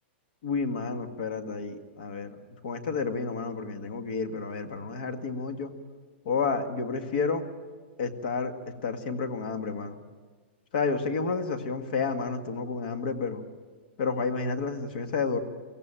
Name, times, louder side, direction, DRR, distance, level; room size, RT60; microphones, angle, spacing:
voice 1, 0.4-2.4 2.6-5.7 6.3-7.4 8.0-8.5 8.8-10.0 10.7-13.4 14.0-15.4, left 4 dB, 50° left, 7 dB, 1.9 m, -30 dB
23.0 x 16.5 x 8.9 m, 1.5 s
supercardioid pair, 175°, 6 cm